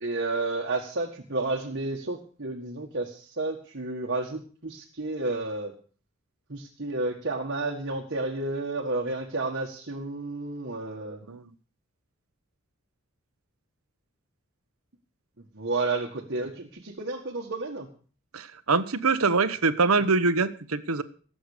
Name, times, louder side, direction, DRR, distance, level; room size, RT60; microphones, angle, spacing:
voice 1, 0.0-5.7 6.5-11.2 15.5-17.9, right 2 dB, 55° right, 0 dB, 1.7 m, -31 dB
voice 2, 18.3-21.0, right 4 dB, 90° right, 12 dB, 1.1 m, -24 dB
17.5 x 7.9 x 6.6 m, 0.42 s
head